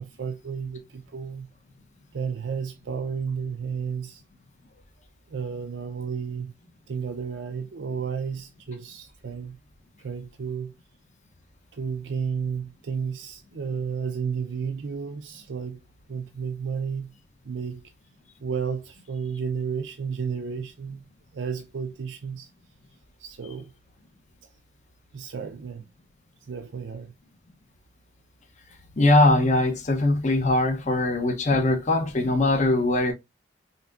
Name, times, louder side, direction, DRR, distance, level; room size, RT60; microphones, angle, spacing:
voice 1, 0.0-1.5 2.1-4.2 5.3-6.5 6.9-9.6 10.0-10.7 11.7-15.8 16.1-17.1 17.4-17.8 18.4-21.1 21.3-22.5 23.2-23.7 24.4-24.5 25.1-25.8 26.4-27.1 31.5-31.6, right 6 dB, 85° right, 0.5 m, -32 dB
voice 2, 29.0-33.1, left 2 dB, 40° left, 0.7 m, -21 dB
5.6 x 2.6 x 2.4 m
head